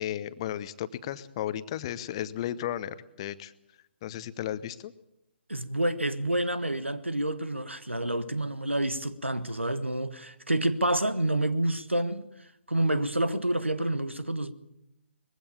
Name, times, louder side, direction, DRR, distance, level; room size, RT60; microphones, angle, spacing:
voice 1, 0.0-3.5 4.0-4.9, left 11 dB, 30° left, 0.8 m, -34 dB
voice 2, 5.5-12.3 12.7-14.5, right 1 dB, 85° right, 1.4 m, -28 dB
21.0 x 16.0 x 8.4 m
figure-of-eight pair, 135°, 6 cm